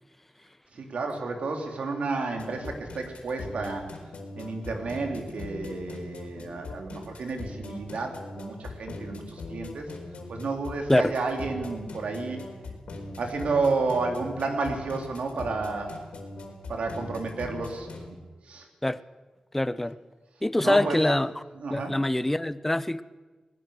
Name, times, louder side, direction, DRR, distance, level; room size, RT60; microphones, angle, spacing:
voice 1, 0.7-3.9 4.4-9.9 10.3-12.4 13.2-16.0 16.7-17.9 18.4-18.7 20.6-21.0 21.5-22.0, right 3 dB, 75° right, 3.4 m, -31 dB
sound 1, 2.4-18.1, left 2 dB, 80° left, 4.5 m, -40 dB
voice 2, 19.5-20.0 20.4-21.3 21.7-23.0, left 1 dB, 10° left, 0.7 m, -24 dB
20.5 x 19.5 x 6.7 m
wide cardioid pair, 95°, 2 cm